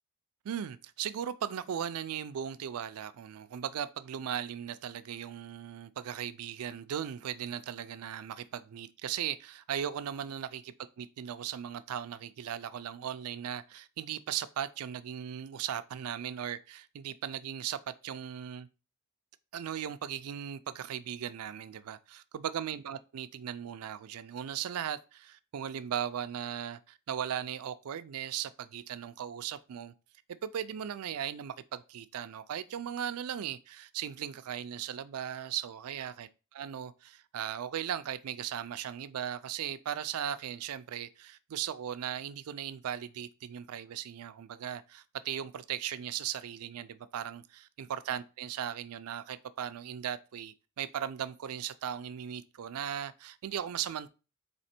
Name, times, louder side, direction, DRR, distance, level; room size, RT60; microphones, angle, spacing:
voice 1, 0.4-18.7 19.5-29.9 30.4-54.1, right 9 dB, 80° right, 0.4 m, -38 dB
4.2 x 2.9 x 4.3 m
head